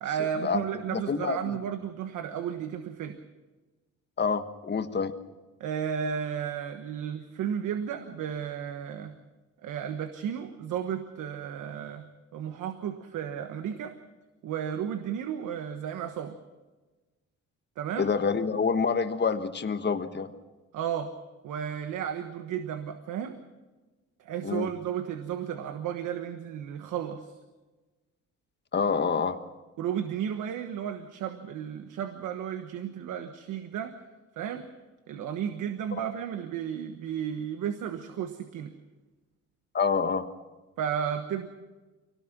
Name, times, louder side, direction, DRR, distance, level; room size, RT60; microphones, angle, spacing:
voice 1, 0.0-3.2 5.6-9.2 9.6-12.1 12.3-13.9 14.4-16.4 17.8-18.1 20.7-21.1 21.4-23.4 24.2-27.3 29.8-33.9 34.4-34.6 35.1-38.7 40.8-41.5, right 8 dB, 85° right, 8 dB, 1.3 m, -33 dB
voice 2, 0.9-1.5 4.2-5.2 18.0-20.3 24.4-24.7 28.7-29.4 39.7-40.3, left 5 dB, 35° left, 9 dB, 1.3 m, -27 dB
24.5 x 18.0 x 6.1 m, 1.2 s
cardioid pair, 90°, 30 cm